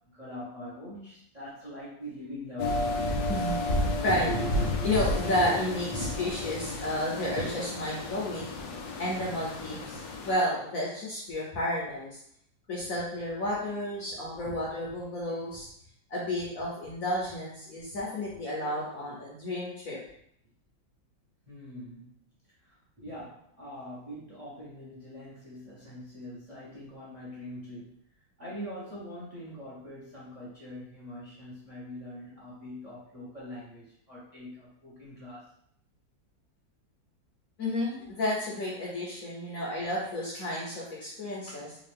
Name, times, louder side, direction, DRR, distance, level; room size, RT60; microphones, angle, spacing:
voice 1, 0.1-3.1 4.1-4.9 5.4-5.5 5.9-6.4 7.3-7.4 14.2-14.6 21.5-22.1 22.6-27.9 28.4-35.5, equal, 30° right, -8 dB, 0.9 m, -41 dB
sound 1, 2.6-10.3, left 1 dB, 85° left, 1.3 m, -32 dB
voice 2, 3.3-3.6 4.0-4.3 4.8-12.2 12.7-15.7 16.1-20.0 37.6-41.8, left 1 dB, 55° left, -5 dB, 1.0 m, -32 dB
3.7 x 2.4 x 3.4 m, 0.69 s
omnidirectional pair, 2.0 m